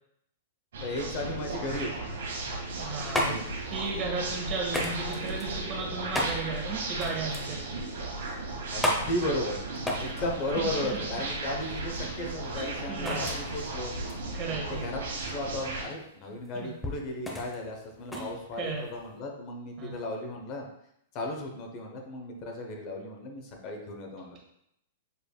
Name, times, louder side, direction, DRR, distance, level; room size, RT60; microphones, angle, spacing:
sound 1, 0.7-15.8, right 2 dB, 80° right, 1.2 m, -35 dB
voice 1, 0.8-1.9 3.2-3.5 8.7-9.6 10.0-13.9 14.5-20.7 21.1-24.4, left 1 dB, 40° left, 2 dB, 0.9 m, -35 dB
sound 2, 2.6-19.2, left 1 dB, 5° left, 0.8 m, -36 dB
voice 2, 2.8-3.3 3.7-7.7 10.6-11.0 12.5-13.3 14.3-14.8 16.6-16.7 18.1-18.3 18.6-18.8 19.8-19.9, right 4 dB, 35° right, -1 dB, 1.5 m, -35 dB
6.8 x 3.3 x 2.3 m, 0.76 s
hypercardioid pair, 130°, 0 cm